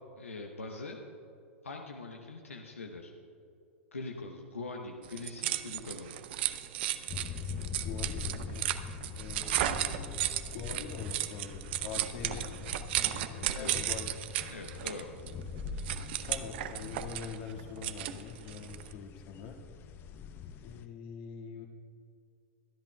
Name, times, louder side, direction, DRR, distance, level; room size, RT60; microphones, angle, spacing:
voice 1, 0.2-1.0 1.6-3.1 3.9-6.1 13.5-13.8 14.5-15.1, left 3 dB, 85° left, 2 dB, 0.9 m, -42 dB
sound 1, 5.0-18.9, right 13 dB, 55° right, 0.6 m, -35 dB
sound 2, 7.1-20.8, left 6 dB, 30° left, 0.6 m, -43 dB
voice 2, 7.8-8.7 9.1-10.2 10.5-14.1 16.3-19.6 20.6-21.7, left 6 dB, 50° left, 1 dB, 1.8 m, -44 dB
23.5 x 10.5 x 2.2 m, 2.5 s
figure-of-eight pair, 100°, 7 cm